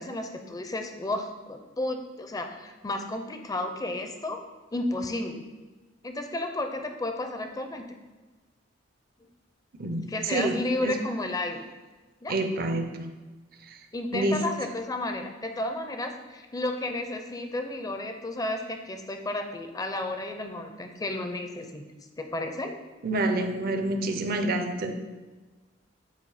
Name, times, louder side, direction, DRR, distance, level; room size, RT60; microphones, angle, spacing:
voice 1, 0.0-4.4 4.7-5.4 6.0-7.8 10.1-11.6 12.2-12.3 13.9-21.8 22.2-22.8, left 2 dB, 20° left, 5 dB, 0.5 m, -32 dB
voice 2, 9.8-10.6 10.8-10.9 12.3-12.9 14.1-14.4 23.0-24.9, right 2 dB, 50° right, 6 dB, 0.6 m, -27 dB
7.9 x 2.7 x 4.8 m, 1.2 s
head